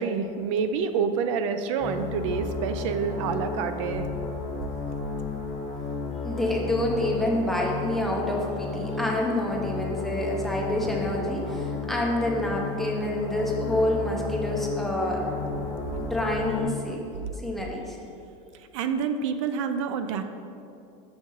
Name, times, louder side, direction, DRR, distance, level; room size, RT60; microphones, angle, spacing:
voice 1, 0.0-4.1 15.8-16.0 18.7-20.2, right 6 dB, 65° right, 9 dB, 0.4 m, -28 dB
sound 1, 1.8-16.6, left 4 dB, 45° left, 1.2 m, -33 dB
voice 2, 6.2-15.2 16.0-17.0 17.4-18.0, left 1 dB, ahead, -3 dB, 0.5 m, -27 dB
6.9 x 3.6 x 5.3 m, 2.6 s
supercardioid pair, 175°, 17 cm